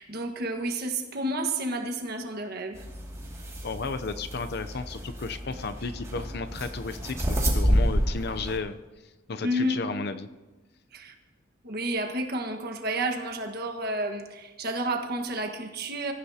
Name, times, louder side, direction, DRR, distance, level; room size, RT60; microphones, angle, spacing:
voice 1, 0.0-2.8 9.4-9.9 10.9-11.1 11.6-16.1, right 1 dB, 50° right, 4 dB, 1.6 m, -30 dB
sound 1, 2.7-8.6, equal, 15° right, 2.4 m, -29 dB
voice 2, 3.6-8.8 9.3-10.3, left 4 dB, 55° left, 10 dB, 0.6 m, -33 dB
24.5 x 14.5 x 2.9 m, 1.2 s
head